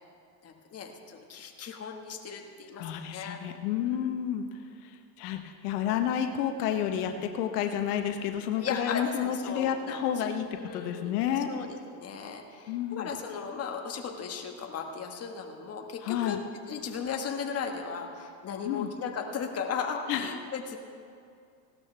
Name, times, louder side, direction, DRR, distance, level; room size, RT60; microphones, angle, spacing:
voice 1, 0.4-2.8 3.1-3.4 3.8-4.1 8.6-11.2 11.5-16.4 16.7-20.8, left 6 dB, 35° left, 2 dB, 1.5 m, -36 dB
voice 2, 2.8-10.5 10.7-11.5 12.7-13.1 16.0-16.4 18.6-18.9 20.1-20.3, left 9 dB, 90° left, 6 dB, 1.0 m, -30 dB
17.5 x 12.5 x 3.4 m, 2.4 s
supercardioid pair, 120°, 45 cm